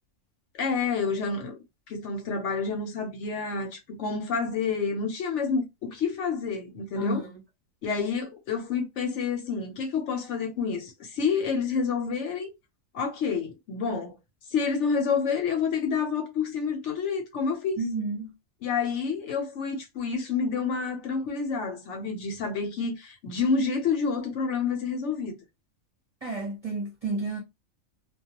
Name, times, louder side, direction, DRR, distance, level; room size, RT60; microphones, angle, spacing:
voice 1, 0.6-1.6 1.9-7.2 7.8-12.5 12.9-14.2 14.5-17.8 18.6-25.4, left 5 dB, 65° left, 0.9 m, -28 dB
voice 2, 7.0-7.4 17.8-18.3 26.2-27.4, right 3 dB, 35° right, 0.6 m, -31 dB
2.2 x 2.2 x 2.8 m
omnidirectional pair, 1.4 m